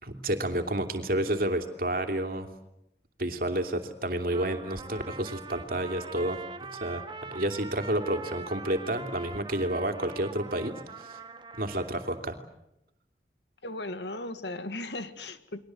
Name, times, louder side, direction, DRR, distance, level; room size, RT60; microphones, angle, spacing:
voice 1, 0.0-2.5 3.2-6.4 6.8-7.0 7.3-11.2 11.6-12.4, right 1 dB, 55° right, 6 dB, 2.9 m, -30 dB
Trumpet, 4.3-12.2, right 3 dB, 25° right, 1.3 m, -43 dB
voice 2, 13.6-15.6, left 2 dB, 70° left, 10 dB, 2.0 m, -37 dB
29.5 x 22.5 x 7.8 m, 0.85 s
head